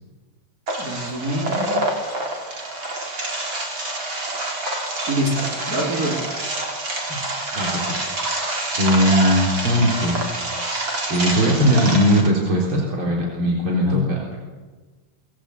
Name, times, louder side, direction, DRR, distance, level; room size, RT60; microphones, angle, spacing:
sound 1, 0.7-12.3, right 2 dB, 70° right, 5.0 m, -27 dB
voice 1, 0.8-1.8 5.1-6.2 13.8-14.0, equal, 45° right, -2 dB, 5.0 m, -25 dB
voice 2, 7.5-7.9 8.8-10.4 11.1-14.4, equal, 90° right, -2 dB, 4.8 m, -19 dB
25.0 x 21.5 x 8.4 m, 1.3 s
omnidirectional pair, 2.2 m